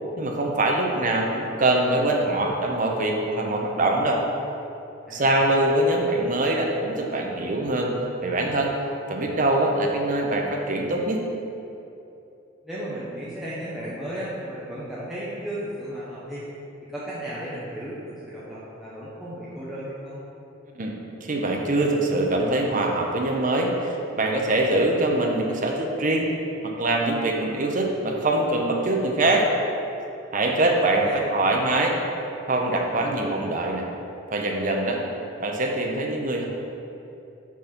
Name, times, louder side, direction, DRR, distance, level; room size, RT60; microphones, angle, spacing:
voice 1, 0.2-4.2 5.1-7.9 8.2-8.8 9.1-11.2 20.7-20.9 21.2-26.3 26.6-29.4 30.3-31.9 32.5-33.8 34.3-35.0 35.4-36.5, right 2 dB, 45° right, 0 dB, 0.8 m, -23 dB
voice 2, 5.1-5.7 12.6-16.5 16.9-20.2 31.0-31.2, right 1 dB, ahead, -10 dB, 0.9 m, -35 dB
6.1 x 4.3 x 5.9 m, 2.8 s
head